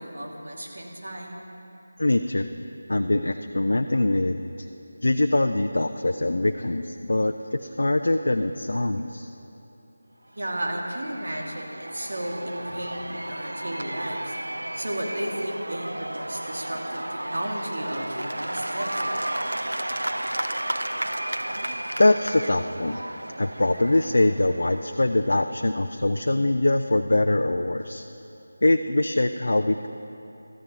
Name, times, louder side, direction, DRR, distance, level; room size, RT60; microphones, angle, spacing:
voice 1, 0.0-1.4 10.3-14.4 14.7-19.2, right 1 dB, 65° right, 0 dB, 2.4 m, -33 dB
voice 2, 2.0-2.5 2.9-4.4 5.0-9.3 22.0-23.0 23.4-28.0 28.6-29.9, left 2 dB, 65° left, 6 dB, 0.5 m, -23 dB
Cheering / Applause / Crowd, 10.4-25.2, right 1 dB, 85° right, 0.4 m, -33 dB
16.5 x 13.5 x 4.1 m, 2.9 s
figure-of-eight pair, 165°, 0 cm